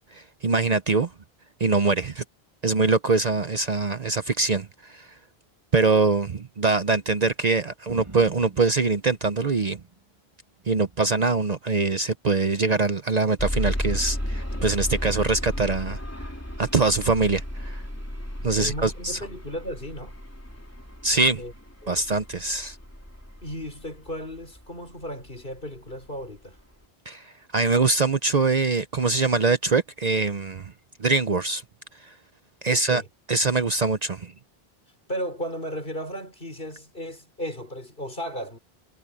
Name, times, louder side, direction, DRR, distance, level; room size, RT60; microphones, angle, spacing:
voice 1, 0.1-1.1 1.6-2.2 2.6-5.1 5.7-9.8 10.7-16.0 16.6-17.8 18.4-19.2 21.0-21.4 21.9-22.8 27.1-27.3 27.5-30.7 31.0-31.6 32.6-33.0 33.3-34.3, right 4 dB, 45° right, 0.8 m, -23 dB
sound 1, 7.9-10.1 10.5-11.4 12.3-12.7 13.7-13.8, right 2 dB, 30° right, 1.9 m, -47 dB
sound 2, 13.4-25.3 26.0-26.1 26.6-26.7, equal, 15° left, 3.5 m, -33 dB
voice 2, 18.6-20.1 21.4-21.5 21.8-22.0 23.4-26.6 32.7-33.1 35.1-38.6, equal, 60° left, 5.9 m, -35 dB
omnidirectional pair, 1.0 m